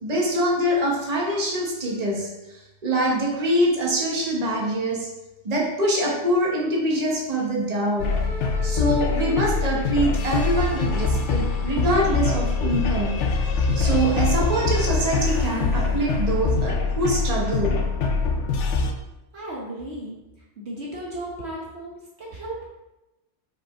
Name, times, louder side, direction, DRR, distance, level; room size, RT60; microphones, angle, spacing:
voice 1, 0.0-5.1 5.4-8.1 8.6-13.2 13.5-17.8, right 1 dB, 30° right, -3 dB, 1.3 m, -24 dB
sound 1, 8.0-18.9, left 4 dB, 65° left, 1.0 m, -23 dB
voice 2, 19.3-20.2 20.6-22.7, right 1 dB, 60° right, -4 dB, 1.3 m, -35 dB
5.4 x 5.1 x 3.7 m, 0.99 s
omnidirectional pair, 1.3 m